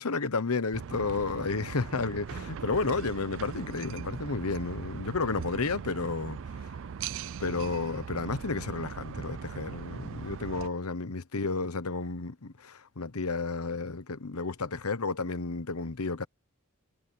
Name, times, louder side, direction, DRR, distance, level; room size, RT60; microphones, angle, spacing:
voice 1, 0.0-6.7 7.4-16.3, left 3 dB, 80° left, 1.1 m, -32 dB
sound 1, 0.7-10.7, right 6 dB, 65° right, 0.4 m, -40 dB
head